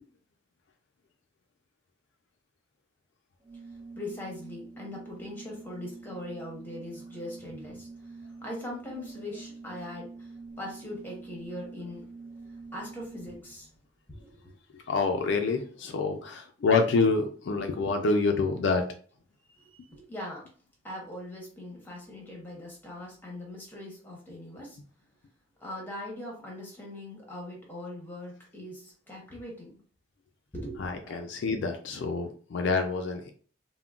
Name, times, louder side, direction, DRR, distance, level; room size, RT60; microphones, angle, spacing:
Organ, 3.4-13.7, right 3 dB, 20° right, 0.5 m, -46 dB
voice 1, 3.6-12.1 12.5-13.7 14.1-14.6 19.5-20.5 20.8-24.8 25.6-29.8 30.5-31.2, left 1 dB, 10° left, -2 dB, 0.8 m, -41 dB
voice 2, 14.7-18.9 30.8-33.3, left 4 dB, 60° left, 5 dB, 0.3 m, -27 dB
3.6 x 2.1 x 2.3 m, 0.43 s
head